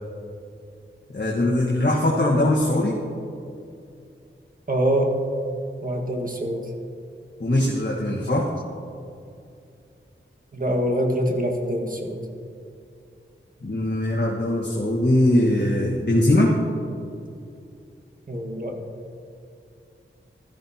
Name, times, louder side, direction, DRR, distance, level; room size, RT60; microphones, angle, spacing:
voice 1, 1.1-3.0 7.4-8.5 13.6-16.6, left 1 dB, 55° left, -4 dB, 1.4 m, -21 dB
voice 2, 4.7-5.2 5.8-6.7 10.5-12.2 18.3-18.8, equal, 40° right, 2 dB, 1.6 m, -24 dB
15.5 x 13.0 x 2.8 m, 2.5 s
wide cardioid pair, 75°, 21 cm